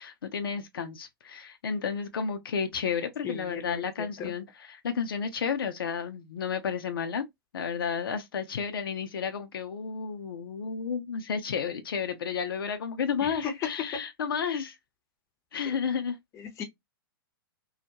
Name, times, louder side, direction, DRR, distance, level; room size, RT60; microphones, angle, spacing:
voice 1, 0.0-7.2 7.5-14.7 15.5-16.2, left 6 dB, 80° left, 0.5 m, -32 dB
voice 2, 3.2-4.3 13.2-13.5 13.9-14.0 16.3-16.6, left 7 dB, 25° left, 0.6 m, -37 dB
2.3 x 2.1 x 2.7 m
hypercardioid pair, 120°, 12 cm